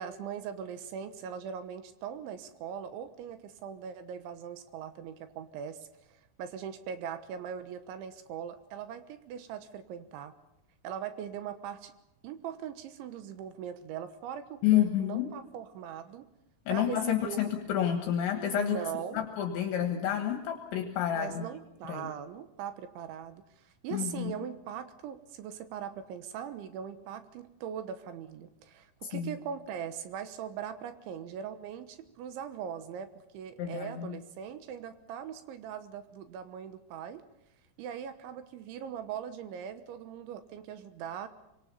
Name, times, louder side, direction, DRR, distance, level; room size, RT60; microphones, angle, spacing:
voice 1, 0.0-10.3 10.8-11.9 12.2-16.2 16.7-17.5 18.6-19.2 21.1-37.2 37.8-41.3, right 8 dB, 75° right, 10 dB, 3.3 m, -40 dB
voice 2, 14.6-15.3 16.7-18.8 19.1-21.5 21.9-22.1 23.9-24.3 29.0-29.4 33.6-34.2, left 10 dB, 70° left, 5 dB, 3.6 m, -29 dB
25.0 x 23.0 x 5.6 m, 0.88 s
omnidirectional pair, 5.8 m